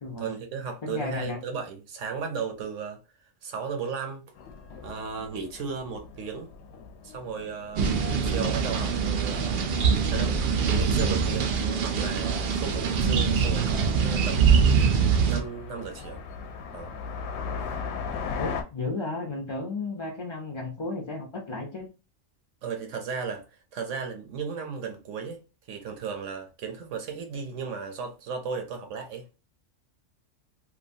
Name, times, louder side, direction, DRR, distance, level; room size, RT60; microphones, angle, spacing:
voice 1, 0.2-3.0 3.4-4.2 4.8-6.5 7.0-7.9 8.2-9.6 10.1-10.4 10.8-11.6 11.8-14.6 15.3-16.2 16.7-17.0 22.6-23.4 23.7-25.4 25.7-29.3, right 5 dB, 80° right, 1.1 m, -35 dB
voice 2, 0.8-1.4 18.4-21.9, left 3 dB, 40° left, 0.4 m, -33 dB
sound 1, 4.4-18.6, left 5 dB, 70° left, 0.8 m, -40 dB
sound 2, 7.8-15.4, right 6 dB, 60° right, 0.5 m, -23 dB
3.0 x 2.3 x 2.5 m
omnidirectional pair, 1.3 m